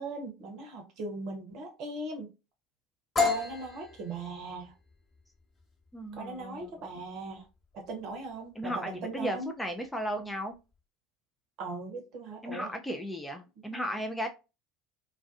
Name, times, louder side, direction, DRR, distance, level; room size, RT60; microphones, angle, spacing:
voice 1, 0.0-2.3 3.2-4.7 6.1-7.5 7.7-9.6 11.6-12.7, right 3 dB, 45° right, 0.7 m, -39 dB
sound 1, 3.2-10.8, left 4 dB, 30° left, 0.8 m, -35 dB
voice 2, 5.9-6.7 8.6-10.6 12.4-14.3, equal, 5° left, 0.3 m, -35 dB
2.3 x 2.3 x 2.4 m
figure-of-eight pair, 70°, 0 cm